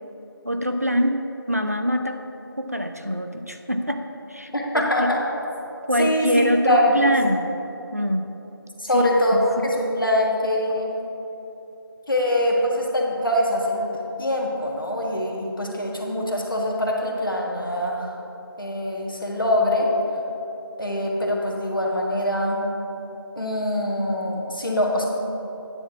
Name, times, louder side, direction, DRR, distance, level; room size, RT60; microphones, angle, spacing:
voice 1, 0.4-1.2 1.5-2.2 2.6-5.1 5.9-7.5 7.9-8.3 8.9-9.6, equal, 40° right, 6 dB, 0.4 m, -24 dB
voice 2, 4.5-5.2 6.0-6.9 8.8-10.9 12.1-13.9 14.2-18.1 18.6-19.9 20.8-22.6 23.4-25.0, left 1 dB, 60° left, -2 dB, 1.7 m, -23 dB
9.7 x 4.2 x 7.2 m, 3.0 s
figure-of-eight pair, 175°, 13 cm